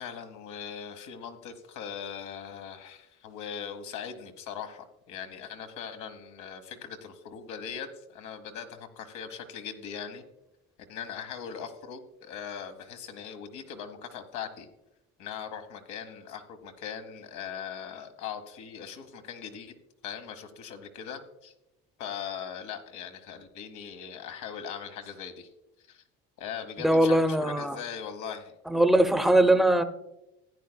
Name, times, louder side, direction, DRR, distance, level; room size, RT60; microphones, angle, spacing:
voice 1, 0.0-10.2 10.9-14.7 15.2-19.8 20.0-21.5 22.0-25.5 25.9-26.0 26.4-28.5, left 7 dB, 75° left, 7 dB, 1.3 m, -40 dB
voice 2, 26.8-27.8 28.7-29.8, right 1 dB, ahead, 9 dB, 0.7 m, -21 dB
15.5 x 9.5 x 2.3 m, 0.90 s
supercardioid pair, 95°, 30 cm